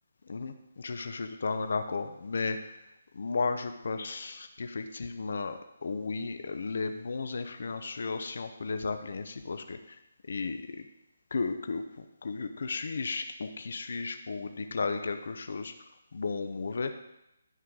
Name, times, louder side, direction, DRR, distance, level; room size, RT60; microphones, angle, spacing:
voice 1, 0.3-2.8 3.1-10.0 10.3-10.9 11.3-15.7 16.1-16.9, left 4 dB, 60° left, 8 dB, 0.6 m, -34 dB
9.9 x 3.9 x 4.7 m, 0.87 s
hypercardioid pair, 175°, 0 cm